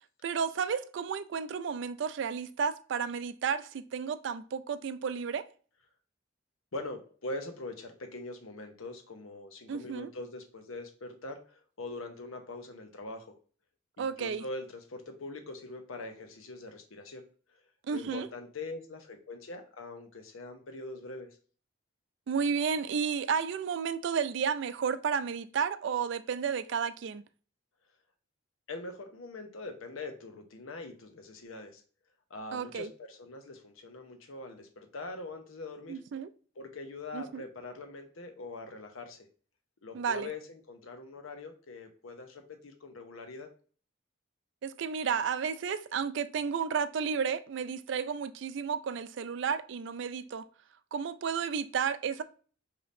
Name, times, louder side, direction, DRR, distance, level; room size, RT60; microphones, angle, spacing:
voice 1, 0.2-5.5 9.7-10.1 14.0-14.4 17.9-18.3 22.3-27.2 32.5-32.9 35.9-36.3 37.1-37.4 39.9-40.3 44.6-50.5 50.9-52.2, right 6 dB, 60° right, 0.3 m, -32 dB
voice 2, 6.7-13.4 14.0-17.2 17.9-21.4 28.7-31.8 32.3-36.0 36.6-39.3 39.8-43.5, left 2 dB, 85° left, 0.8 m, -43 dB
5.1 x 2.8 x 2.6 m
head